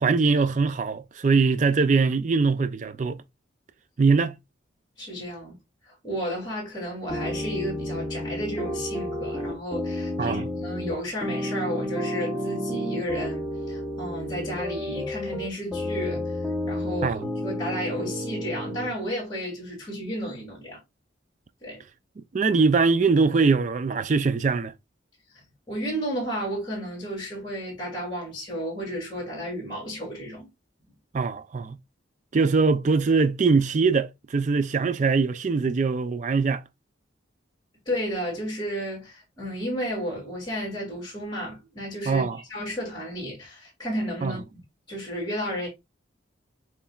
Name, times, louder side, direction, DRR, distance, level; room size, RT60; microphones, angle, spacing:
voice 1, 0.0-3.2 4.0-4.4 10.2-10.5 17.0-17.3 22.3-24.7 31.1-31.8 32.3-36.6 42.1-42.4 44.2-44.4, right 4 dB, 40° right, 0.4 m, -22 dB
voice 2, 5.0-5.6 5.9-16.3 16.6-20.8 21.6-21.8 25.7-30.5 37.9-44.4 44.9-45.7, equal, 20° left, 2.4 m, -32 dB
sound 1, 7.1-18.9, left 1 dB, 5° left, 1.0 m, -31 dB
6.9 x 3.2 x 2.4 m
head